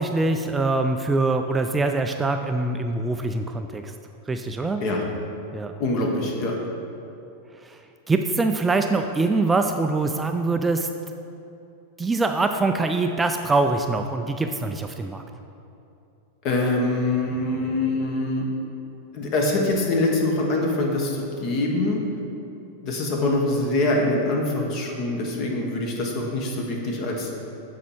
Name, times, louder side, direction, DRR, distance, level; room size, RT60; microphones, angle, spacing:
voice 1, 0.0-3.9 4.3-4.8 5.5-5.7 7.6-7.8 8.1-10.9 12.0-15.2, right 3 dB, 15° right, 6 dB, 0.3 m, -24 dB
voice 2, 5.8-6.6 16.4-18.5 19.1-22.0 22.8-27.3, left 2 dB, 45° left, 0 dB, 1.4 m, -24 dB
8.3 x 4.5 x 4.4 m, 2.8 s
hypercardioid pair, 115°, 0 cm